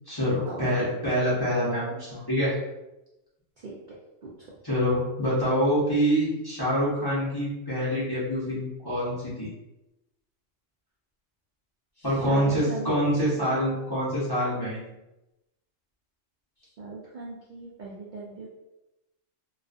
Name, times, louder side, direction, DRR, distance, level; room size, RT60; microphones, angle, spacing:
voice 1, 0.1-2.5 4.6-9.5 12.0-14.8, equal, 25° left, -9 dB, 0.6 m, -26 dB
voice 2, 12.0-13.3 16.8-18.5, right 3 dB, 75° right, -4 dB, 0.4 m, -38 dB
2.4 x 2.4 x 2.4 m, 0.95 s
omnidirectional pair, 1.4 m